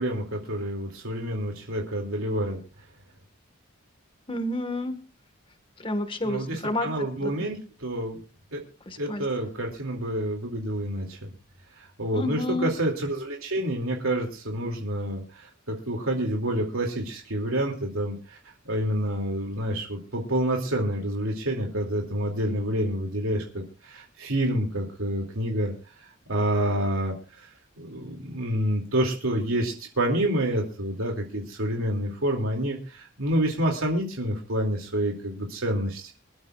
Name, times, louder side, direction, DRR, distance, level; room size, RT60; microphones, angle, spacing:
voice 1, 0.0-2.6 6.2-8.2 8.5-8.6 9.0-11.3 11.8-25.7 26.0-27.5 27.8-36.1, right 1 dB, 80° right, 0 dB, 2.7 m, -28 dB
voice 2, 4.3-5.0 5.8-6.9 7.2-7.3 8.8-9.2 12.1-12.7, left 1 dB, 25° left, 8 dB, 1.7 m, -29 dB
25.0 x 12.5 x 2.5 m, 0.33 s
head